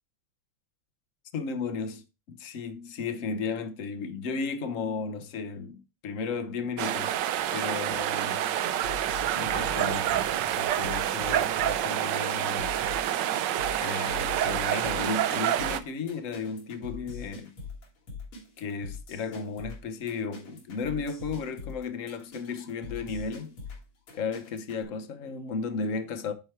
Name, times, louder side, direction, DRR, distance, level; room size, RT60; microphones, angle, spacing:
voice 1, 1.3-7.2 7.5-8.5 9.3-12.7 13.8-17.5 18.6-23.6 24.1-26.3, left 4 dB, 55° left, 0.9 m, -34 dB
sound 1, 6.8-15.8, right 11 dB, 70° right, 1.1 m, -28 dB
sound 2, 8.8-24.8, left 4 dB, 90° left, 3.0 m, -42 dB
9.3 x 4.4 x 4.5 m
omnidirectional pair, 2.4 m